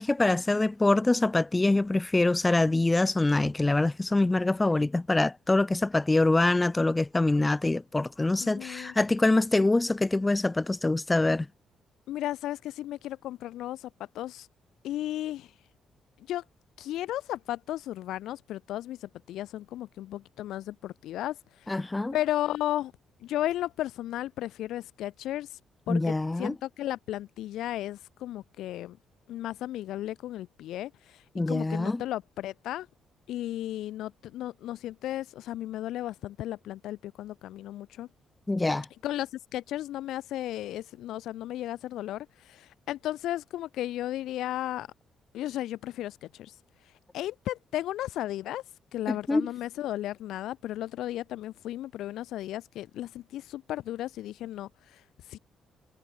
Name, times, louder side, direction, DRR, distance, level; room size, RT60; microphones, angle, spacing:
voice 1, 0.0-11.5 21.7-22.1 25.9-26.5 31.4-32.0 38.5-38.9 49.1-49.5, left 2 dB, 15° left, 1.9 m, -25 dB
voice 2, 8.4-8.9 12.1-13.9 14.1-14.5 14.8-15.5 16.2-16.4 16.8-21.8 22.1-22.9 23.2-25.6 25.9-29.0 29.3-32.9 33.3-38.1 39.0-44.9 45.3-46.6 46.8-48.6 48.9-55.4, left 13 dB, 85° left, 7.7 m, -34 dB
cardioid pair, 90°, 0 cm